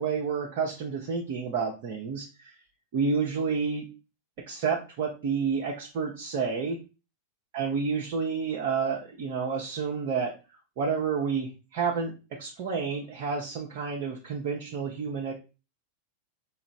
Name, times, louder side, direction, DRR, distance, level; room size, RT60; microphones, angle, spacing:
voice 1, 0.0-2.5 2.9-3.8 4.5-6.8 7.5-10.3 10.8-12.1 12.4-15.3, right 5 dB, 45° right, -2 dB, 0.7 m, -29 dB
4.8 x 2.5 x 3.2 m, 0.31 s
figure-of-eight pair, 90°, 0 cm